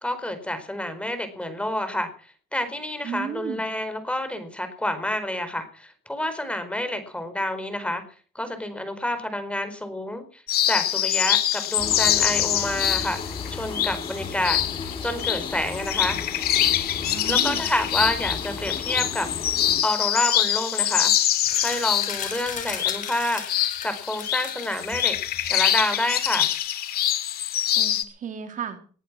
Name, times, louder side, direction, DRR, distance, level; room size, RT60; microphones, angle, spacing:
voice 1, 0.0-2.1 2.5-8.0 8.3-14.6 15.0-16.2 17.3-19.3 19.8-21.1 21.6-23.4 23.8-25.2 25.5-26.5, left 1 dB, 5° left, 9 dB, 4.5 m, -28 dB
voice 2, 3.0-3.6 17.1-17.6 27.8-28.8, right 7 dB, 50° right, 7 dB, 2.9 m, -33 dB
sound 1, 10.5-28.0, left 11 dB, 65° left, 2.2 m, -25 dB
sound 2, 11.8-19.8, left 4 dB, 30° left, 3.8 m, -35 dB
sound 3, 21.4-26.6, left 7 dB, 50° left, 5.7 m, -36 dB
20.0 x 11.0 x 6.2 m, 0.43 s
cardioid pair, 110°, 17 cm